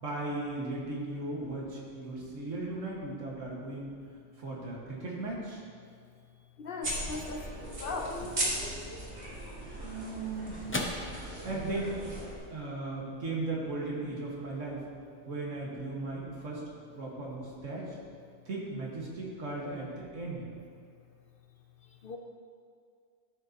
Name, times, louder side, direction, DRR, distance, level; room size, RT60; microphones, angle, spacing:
voice 1, 0.0-3.9 4.4-5.6 9.8-10.6 11.4-12.1 12.5-14.8 15.3-16.6 16.9-18.0 18.5-20.5, right 2 dB, 85° right, -4 dB, 1.9 m, -37 dB
voice 2, 6.6-8.1 22.0-22.2, left 3 dB, 55° left, 3 dB, 0.7 m, -38 dB
sound 1, 6.8-12.4, right 1 dB, 65° right, 2.0 m, -37 dB
sound 2, 9.4-18.0, left 1 dB, 15° left, 0.4 m, -45 dB
12.5 x 6.6 x 2.8 m, 2.2 s
omnidirectional pair, 1.3 m